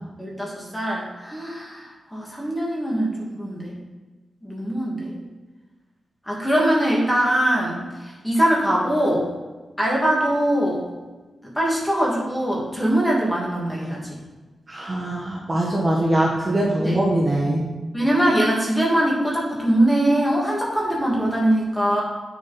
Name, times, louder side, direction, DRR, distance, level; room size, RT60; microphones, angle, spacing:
voice 1, 0.2-3.8 4.4-5.2 6.2-9.3 9.8-10.8 11.5-14.2 16.8-17.0 17.9-22.0, right 1 dB, 10° left, -4 dB, 2.6 m, -22 dB
voice 2, 14.7-17.6, right 1 dB, 25° right, -4 dB, 1.5 m, -22 dB
8.8 x 7.1 x 4.4 m, 1.2 s
wide cardioid pair, 110°, 0 cm